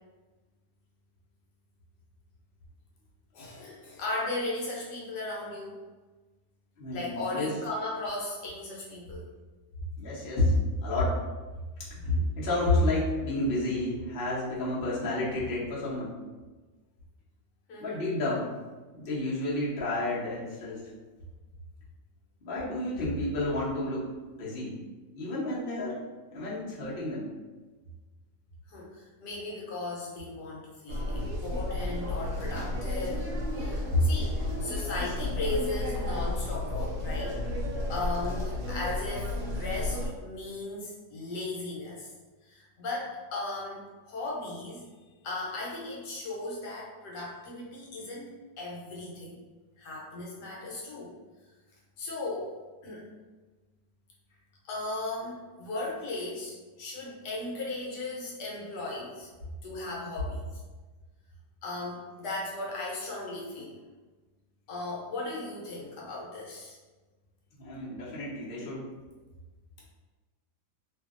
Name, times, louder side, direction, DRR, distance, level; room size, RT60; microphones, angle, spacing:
voice 1, 3.3-5.8 6.9-9.3 12.1-12.2 17.7-18.0 28.7-33.3 33.5-34.2 34.6-37.4 37.9-42.1 42.4-44.9 45.2-49.4 49.8-51.1 52.0-52.5 52.8-53.1 54.7-59.3 59.6-60.6 61.6-63.8 64.7-66.8, left 2 dB, 70° left, -4 dB, 1.2 m, -36 dB
voice 2, 6.8-7.6 10.0-11.2 11.8-16.2 17.8-18.5 18.9-20.9 22.4-24.1 24.4-24.8 25.1-26.0 26.3-27.4 33.9-34.0 67.6-68.9, left 2 dB, 50° left, -7 dB, 0.6 m, -30 dB
sound 1, 30.9-40.1, left 1 dB, 70° right, 0.9 m, -32 dB
2.7 x 2.7 x 2.4 m, 1.3 s
omnidirectional pair, 2.0 m